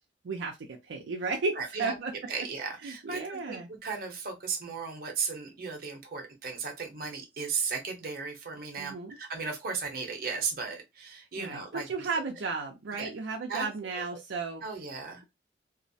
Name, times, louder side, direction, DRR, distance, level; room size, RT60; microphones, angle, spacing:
voice 1, 0.2-2.1 2.8-3.7 8.8-9.2 11.4-14.6, right 4 dB, 85° right, 0.5 m, -34 dB
voice 2, 1.5-1.9 2.3-12.2 13.0-13.1 13.5-13.7 13.9-14.2 14.6-15.2, right 5 dB, 55° right, 0.7 m, -36 dB
2.3 x 2.0 x 2.6 m
head